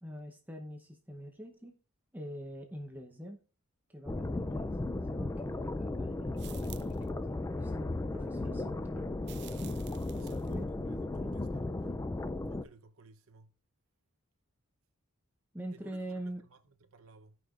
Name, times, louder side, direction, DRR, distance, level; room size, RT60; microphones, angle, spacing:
voice 1, 0.0-1.7 2.1-3.4 3.9-9.2 10.5-10.6 15.5-16.4, right 1 dB, 10° right, 0.8 m, -44 dB
sound 1, 4.1-12.6, left 2 dB, 15° left, 0.3 m, -35 dB
sound 2, 6.4-7.1 9.2-10.6, right 14 dB, 55° right, 0.5 m, -52 dB
voice 2, 10.1-12.1 12.5-13.6 15.7-16.6 16.9-17.4, right 3 dB, 70° right, 0.8 m, -58 dB
16.5 x 5.7 x 2.5 m
head